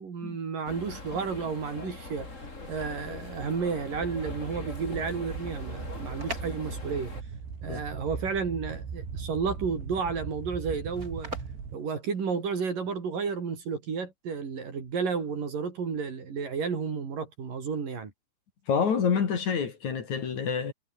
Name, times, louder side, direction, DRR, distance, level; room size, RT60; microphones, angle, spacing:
voice 1, 0.0-2.3 2.7-7.1 7.6-11.3 11.7-18.1, right 5 dB, 55° right, 5.4 m, -32 dB
sound 1, 0.6-7.2, left 2 dB, 20° left, 3.8 m, -42 dB
sound 2, 4.0-11.8, right 6 dB, 80° right, 7.8 m, -39 dB
sound 3, 5.8-12.7, right 2 dB, 20° right, 8.3 m, -45 dB
voice 2, 18.7-20.7, left 6 dB, 45° left, 3.6 m, -27 dB
omnidirectional pair, 4.9 m